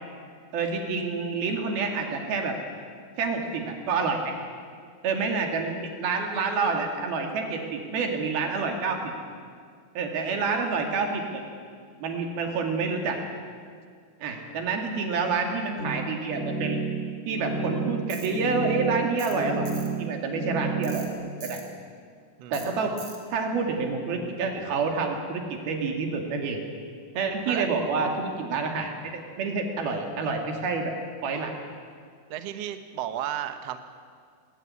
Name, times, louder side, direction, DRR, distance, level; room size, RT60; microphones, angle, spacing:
voice 1, 0.5-2.6 3.2-4.3 5.0-9.0 10.0-11.4 12.0-13.2 14.2-16.8 17.3-21.1 21.4-21.6 22.5-22.9 23.3-26.6 27.2-30.9 31.2-31.5, right 4 dB, 85° right, 3 dB, 4.3 m, -28 dB
sound 1, 15.8-21.1, right 4 dB, 35° left, 1.1 m, -31 dB
Tools, 18.1-18.3 19.2-19.4 19.7-19.9 20.8-21.1 21.4-21.6 22.5-22.7 23.0-23.2, right 4 dB, 35° right, 3.0 m, -42 dB
voice 2, 22.4-23.0 27.5-27.7 32.3-33.8, right 11 dB, 65° right, 8 dB, 1.7 m, -34 dB
20.5 x 17.0 x 9.7 m, 2.1 s
omnidirectional pair, 4.2 m